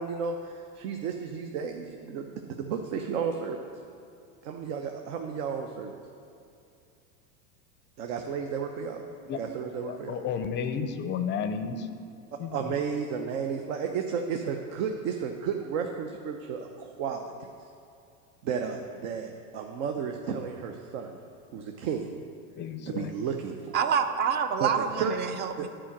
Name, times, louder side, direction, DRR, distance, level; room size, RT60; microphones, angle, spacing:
voice 1, 0.0-3.7 4.4-5.9 8.0-9.1 9.3-10.1 12.5-17.5 18.4-21.2 21.5-22.2 22.9-23.8 24.6-25.1 25.6-25.7, right 6 dB, 65° right, 3 dB, 0.8 m, -33 dB
voice 2, 9.8-11.9 12.4-12.6 22.6-23.1, left 6 dB, 25° left, 9 dB, 0.5 m, -32 dB
voice 3, 23.7-25.7, right 7 dB, 25° right, 9 dB, 0.5 m, -27 dB
10.0 x 5.0 x 7.3 m, 2.5 s
supercardioid pair, 125°, 43 cm